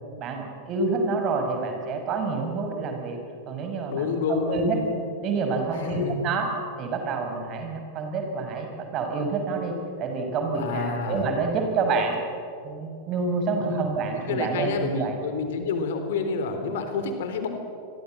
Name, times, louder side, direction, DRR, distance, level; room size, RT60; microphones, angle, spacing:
voice 1, 0.2-3.2 3.5-4.8 5.2-6.5 6.8-12.2 12.6-15.1, right 4 dB, 35° right, 4 dB, 6.0 m, -28 dB
voice 2, 3.9-5.0 5.7-6.2 10.5-11.3 13.6-13.8 14.1-17.5, left 4 dB, 55° left, 7 dB, 3.6 m, -29 dB
28.5 x 22.5 x 7.8 m, 2.6 s
figure-of-eight pair, 90°, 0 cm